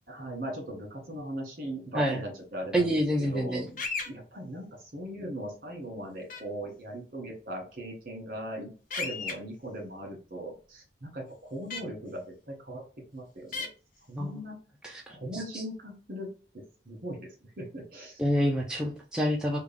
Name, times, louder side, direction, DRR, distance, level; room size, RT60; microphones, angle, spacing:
voice 1, 0.1-12.8 13.1-13.7 14.1-14.6 15.1-16.3 16.8-17.3 17.6-18.2, right 1 dB, 50° right, 1 dB, 1.6 m, -39 dB
voice 2, 2.7-3.7 14.2-14.4 14.8-15.6 18.2-19.6, equal, 5° right, -2 dB, 0.4 m, -28 dB
sound 1, 3.8-4.1 6.3-6.4 8.9-9.3 11.7-11.8 13.5-13.7, left 4 dB, 50° left, 0.7 m, -33 dB
3.5 x 2.3 x 3.5 m, 0.37 s
head